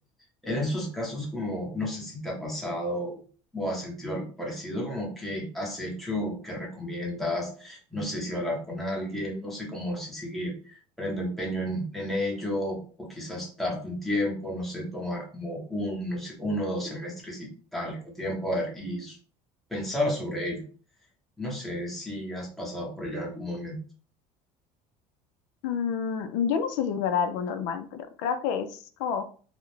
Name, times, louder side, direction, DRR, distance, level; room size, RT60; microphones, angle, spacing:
voice 1, 0.4-3.2 3.5-19.2 19.7-20.6 21.4-23.8, left 1 dB, ahead, -3 dB, 0.8 m, -32 dB
voice 2, 25.6-29.3, left 7 dB, 85° left, 8 dB, 0.4 m, -29 dB
2.3 x 2.1 x 3.0 m, 0.41 s
cardioid pair, 145°, 14 cm